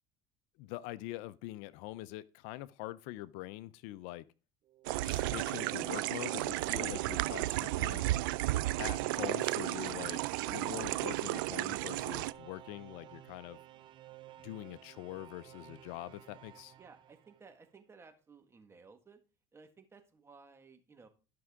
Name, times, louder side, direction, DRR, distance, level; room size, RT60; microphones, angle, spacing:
voice 1, 0.6-4.3 5.0-8.0 8.8-10.2 10.5-13.6 14.4-16.7, left 17 dB, 80° left, 0.5 m, -44 dB
sound 1, 4.7-17.7, right 13 dB, 45° right, 0.7 m, -53 dB
sound 2, 4.8-12.3, right 17 dB, 90° right, 0.4 m, -33 dB
voice 2, 16.8-19.2 19.5-21.1, right 4 dB, 25° right, 1.7 m, -57 dB
12.5 x 6.1 x 3.6 m
supercardioid pair, 100°, 11 cm